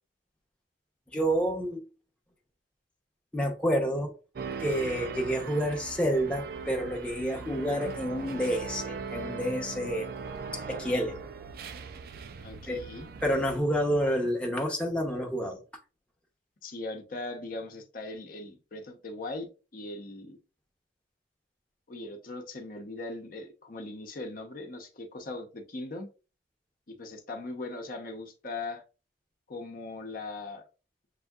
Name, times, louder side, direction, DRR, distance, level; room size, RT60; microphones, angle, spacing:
voice 1, 1.1-1.9 3.3-4.1 4.6-10.1 10.5-11.2 12.7-12.8 13.2-15.6, equal, 5° left, 0.7 m, -29 dB
sound 1, 4.4-13.6, right 5 dB, 55° right, 0.4 m, -40 dB
voice 2, 12.4-13.1 16.6-20.4 21.9-26.1 26.9-28.8 29.5-30.6, left 2 dB, 50° left, 0.8 m, -39 dB
6.6 x 2.7 x 2.3 m
head